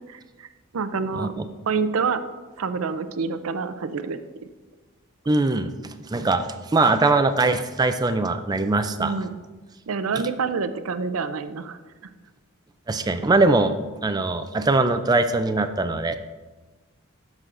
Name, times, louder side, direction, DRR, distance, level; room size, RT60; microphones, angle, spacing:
voice 1, 0.1-0.5 0.7-1.3 1.7-2.2 2.6-4.2 9.0-9.4 9.9-11.8, right 5 dB, 80° right, 11 dB, 0.5 m, -27 dB
voice 2, 1.1-1.4 5.3-9.1 10.2-10.3 12.9-16.2, right 3 dB, 20° right, 10 dB, 0.3 m, -22 dB
13.0 x 6.2 x 2.5 m, 1.3 s
head